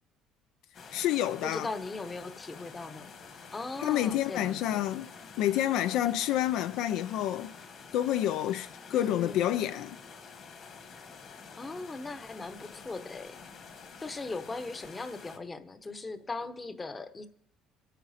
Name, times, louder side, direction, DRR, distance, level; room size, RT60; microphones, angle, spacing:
sound 1, 0.7-15.4, left 5 dB, 45° left, 1.6 m, -49 dB
voice 1, 0.9-1.7 3.8-5.1 5.4-7.5 7.9-10.0, left 12 dB, 70° left, 0.4 m, -28 dB
voice 2, 1.4-3.1 3.5-4.9 8.9-9.5 11.6-13.4 14.0-17.3, left 3 dB, 15° left, 0.8 m, -39 dB
24.5 x 9.1 x 4.2 m
cardioid pair, 140°, 0 cm